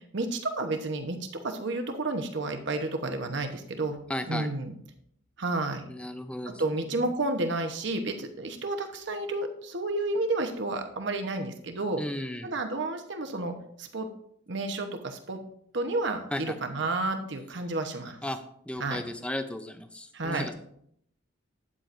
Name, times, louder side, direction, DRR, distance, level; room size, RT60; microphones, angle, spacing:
voice 1, 0.1-4.0 4.3-4.7 5.4-5.8 6.5-12.0 12.4-14.1 14.5-15.4 15.7-18.2 18.8-19.0 20.1-20.5, right 2 dB, 60° right, 6 dB, 1.0 m, -31 dB
voice 2, 4.1-4.5 5.9-6.6 6.9-7.1 12.0-12.6 16.3-16.6 18.2-18.4 18.7-20.5, left 1 dB, 5° left, 9 dB, 0.6 m, -35 dB
12.5 x 8.8 x 2.6 m, 0.69 s
head